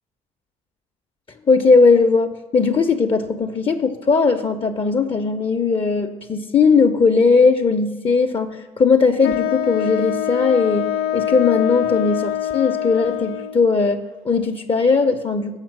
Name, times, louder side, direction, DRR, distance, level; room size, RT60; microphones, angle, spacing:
voice 1, 1.5-15.6, left 4 dB, 30° left, 6 dB, 0.7 m, -18 dB
Wind instrument woodwind instrument, 9.2-13.7, left 11 dB, 65° left, 0.6 m, -24 dB
7.3 x 5.7 x 7.4 m, 1.3 s
hypercardioid pair, 60°, 18 cm